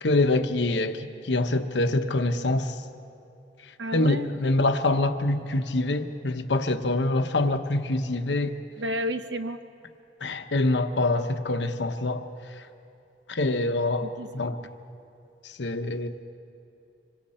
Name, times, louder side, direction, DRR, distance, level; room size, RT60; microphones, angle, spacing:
voice 1, 0.0-2.8 3.9-8.5 10.2-12.3 13.3-14.6 15.4-16.1, left 2 dB, 90° left, 7 dB, 1.0 m, -25 dB
voice 2, 3.8-4.3 8.8-9.6 14.0-14.3, equal, 90° right, 9 dB, 1.0 m, -31 dB
25.5 x 25.0 x 4.4 m, 2.7 s
head